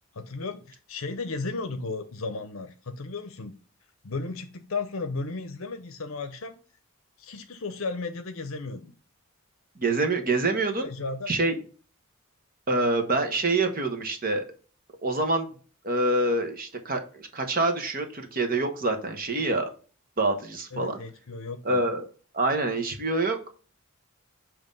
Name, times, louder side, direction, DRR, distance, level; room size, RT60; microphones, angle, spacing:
voice 1, 0.1-3.6 4.0-6.6 7.2-8.9 10.8-11.3 20.7-21.9, left 3 dB, 60° left, 7 dB, 0.7 m, -34 dB
voice 2, 9.8-10.9 11.3-11.6 12.7-14.4 15.0-15.5 15.8-19.7 20.2-21.0 21.6-22.0 22.3-23.4, right 2 dB, 40° right, 6 dB, 1.1 m, -26 dB
7.4 x 2.9 x 5.2 m, 0.38 s
head